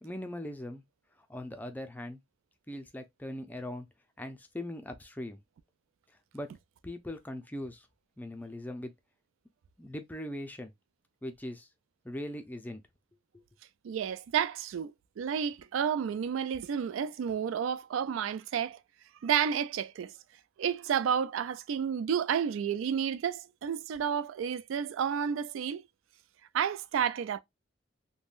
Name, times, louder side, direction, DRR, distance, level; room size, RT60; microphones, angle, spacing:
voice 1, 0.0-0.8 1.3-2.2 2.7-3.9 4.2-5.4 6.3-6.5 6.8-7.9 8.2-8.9 9.8-10.7 11.2-11.7 12.0-12.8, left 1 dB, 10° left, 0.4 m, -40 dB
voice 2, 13.8-14.9 15.2-18.8 19.2-20.1 20.6-25.8 26.5-27.4, right 8 dB, 85° right, 0.3 m, -31 dB
3.5 x 2.2 x 2.4 m
head